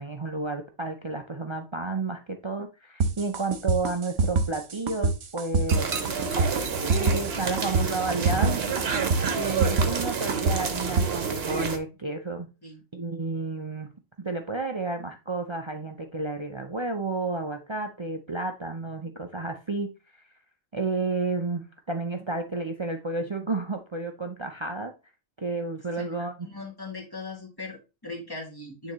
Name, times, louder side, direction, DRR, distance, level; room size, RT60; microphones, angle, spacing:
voice 1, 0.0-5.9 6.9-8.6 8.9-12.5 12.9-13.9 14.2-20.2 20.7-24.9 25.4-26.5, right 3 dB, 40° right, 5 dB, 0.4 m, -31 dB
sound 1, 3.0-11.1, right 3 dB, 75° right, 1.2 m, -25 dB
sound 2, 5.7-11.8, right 5 dB, 55° right, 1.1 m, -29 dB
voice 2, 26.4-28.9, left 3 dB, 20° left, -2 dB, 2.1 m, -39 dB
9.0 x 3.8 x 3.0 m, 0.29 s
omnidirectional pair, 1.3 m